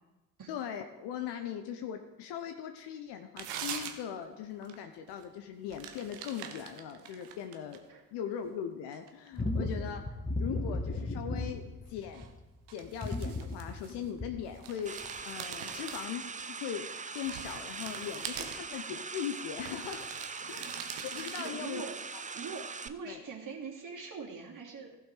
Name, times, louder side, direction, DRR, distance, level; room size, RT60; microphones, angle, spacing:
voice 1, 0.5-7.8 8.1-10.0 10.4-12.3 12.7-14.9 15.2-16.2 16.5-16.9 17.1-20.1 20.5-20.7 21.1-21.9 23.0-23.2, left 9 dB, 65° left, 6 dB, 0.9 m, -39 dB
sound 1, 3.4-4.2 4.6-4.8 5.1-5.2 5.7-7.9 8.4-9.5 12.1-12.3 12.7-14.2 14.5-16.4 16.9-18.8 19.6-21.5, right 8 dB, 75° right, 1.1 m, -44 dB
sound 2, 9.4-12.4 12.8-14.6 15.0-15.2, left 2 dB, 20° left, 2.0 m, -35 dB
sound 3, 14.8-22.9, right 4 dB, 15° right, 0.6 m, -41 dB
voice 2, 20.4-21.1 21.4-22.0 22.3-25.0, right 5 dB, 45° right, -1 dB, 2.8 m, -43 dB
15.5 x 5.7 x 5.0 m, 1.1 s
hypercardioid pair, 45°, 44 cm